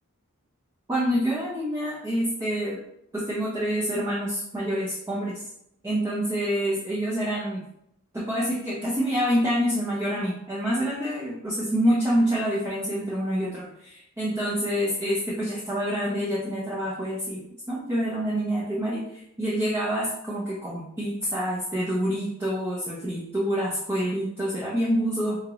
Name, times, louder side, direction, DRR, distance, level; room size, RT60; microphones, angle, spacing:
voice 1, 0.9-2.8 3.1-5.4 5.8-7.6 8.1-25.4, equal, 10° right, -6 dB, 0.4 m, -27 dB
3.6 x 3.2 x 2.4 m, 0.75 s
head